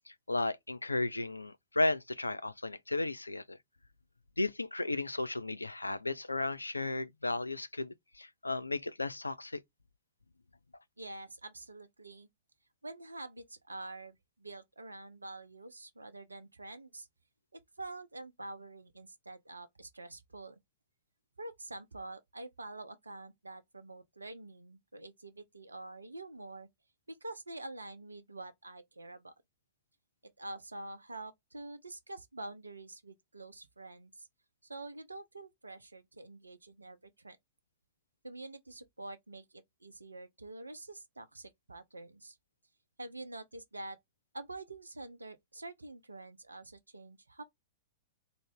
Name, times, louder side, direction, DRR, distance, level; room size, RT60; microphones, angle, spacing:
voice 1, 0.0-3.6 4.4-9.6, left 2 dB, 80° left, 0.3 m, -34 dB
voice 2, 11.0-12.3 12.8-17.1 17.5-20.6 21.4-26.7 27.1-29.3 30.2-34.3 34.6-37.4 38.2-42.4 43.0-44.0 44.3-47.4, right 2 dB, 80° right, 0.6 m, -47 dB
3.7 x 2.0 x 3.5 m
figure-of-eight pair, 105°, 0 cm